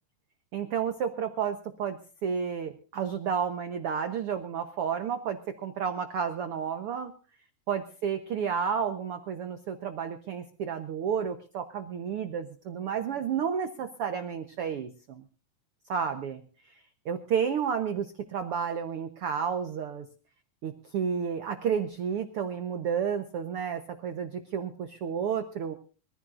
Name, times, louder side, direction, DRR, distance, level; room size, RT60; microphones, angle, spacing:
voice 1, 0.5-7.1 7.7-15.2 15.9-16.4 16.6-16.7 17.0-20.1 20.6-25.8, right 7 dB, 80° right, 8 dB, 1.2 m, -31 dB
25.0 x 15.0 x 2.5 m, 0.37 s
omnidirectional pair, 4.0 m